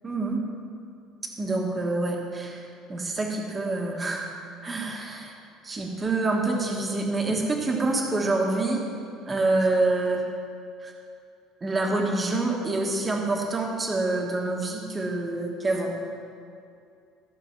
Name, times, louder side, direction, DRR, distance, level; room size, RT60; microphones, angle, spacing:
voice 1, 0.0-0.4 1.4-4.3 4.6-5.3 5.6-8.8 9.3-10.2 11.6-15.9, right 2 dB, 15° right, 0 dB, 1.4 m, -26 dB
15.0 x 6.9 x 5.9 m, 2.5 s
cardioid pair, 175°, 0 cm